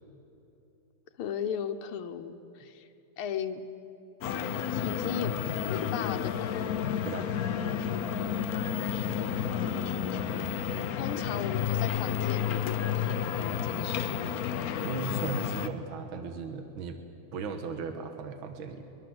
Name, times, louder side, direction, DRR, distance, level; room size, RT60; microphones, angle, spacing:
voice 1, 1.2-2.9 3.2-3.6 4.8-5.4 5.7-6.6 11.0-14.4, left 8 dB, 85° left, 6 dB, 1.9 m, -36 dB
sound 1, 4.2-15.7, left 9 dB, 60° left, 1.0 m, -31 dB
voice 2, 14.8-17.0 17.3-18.8, right 4 dB, 70° right, 6 dB, 2.0 m, -36 dB
22.5 x 22.0 x 7.8 m, 3.0 s
omnidirectional pair, 2.3 m